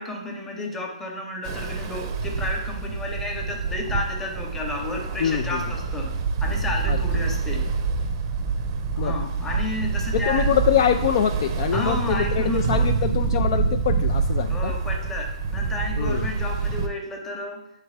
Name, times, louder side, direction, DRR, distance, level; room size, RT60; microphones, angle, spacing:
voice 1, 0.0-6.1 6.4-7.7 8.9-10.5 11.7-12.9 14.5-17.6, left 2 dB, 10° left, 1 dB, 0.8 m, -32 dB
Ocean, 1.4-16.9, right 4 dB, 35° right, 0.6 m, -26 dB
voice 2, 5.2-5.6 6.9-7.0 9.0-9.1 10.1-14.7 16.0-16.3, left 9 dB, 45° left, 7 dB, 0.3 m, -24 dB
8.2 x 3.5 x 3.3 m, 0.80 s
hypercardioid pair, 150°, 4 cm